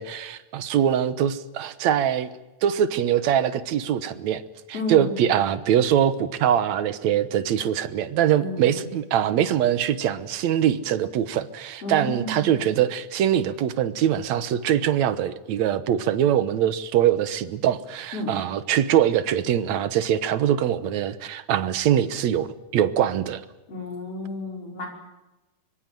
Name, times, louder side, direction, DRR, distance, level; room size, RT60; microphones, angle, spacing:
voice 1, 0.0-2.3 2.6-4.4 4.9-22.5 22.7-23.4, right 10 dB, 65° right, 13 dB, 2.2 m, -23 dB
voice 2, 4.7-5.3 8.4-8.9 11.8-12.5 18.1-18.4 23.7-24.9, left 2 dB, 45° left, 1 dB, 6.3 m, -32 dB
24.5 x 23.5 x 7.7 m, 1.1 s
omnidirectional pair, 3.8 m